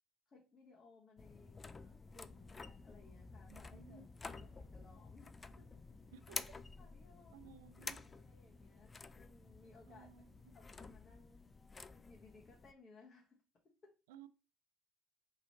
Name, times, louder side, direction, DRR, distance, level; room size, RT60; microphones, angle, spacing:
voice 1, 0.3-4.0 4.3-5.8 6.8-7.5 7.8-10.1 10.5-11.4 12.0-13.4 13.8-14.0, left 3 dB, 40° left, 1.0 m, -63 dB
sound 1, 1.2-12.7, left 4 dB, 25° left, 0.3 m, -51 dB
sound 2, 2.2-10.6, right 3 dB, 70° right, 1.1 m, -72 dB
voice 2, 3.5-4.0 4.3-4.5 6.1-6.6 7.3-8.1 9.9-10.3 14.1-14.3, right 8 dB, 85° right, 0.3 m, -58 dB
3.1 x 2.9 x 4.0 m
hypercardioid pair, 75°, 0 cm